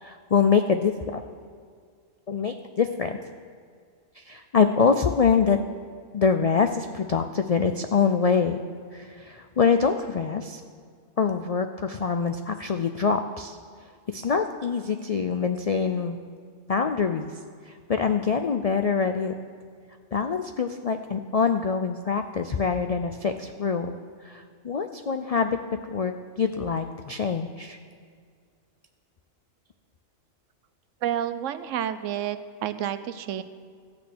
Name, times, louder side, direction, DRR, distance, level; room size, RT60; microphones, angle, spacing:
voice 1, 0.0-1.2 2.3-3.1 4.2-5.6 6.1-8.6 8.9-10.6 11.2-13.6 14.1-16.2 16.7-17.3 17.7-19.3 20.1-24.0 24.2-25.6 25.9-27.8, left 6 dB, 75° left, 7 dB, 0.3 m, -25 dB
voice 2, 31.0-33.4, right 10 dB, 75° right, 12 dB, 1.0 m, -30 dB
13.5 x 6.1 x 8.5 m, 2.1 s
omnidirectional pair, 1.3 m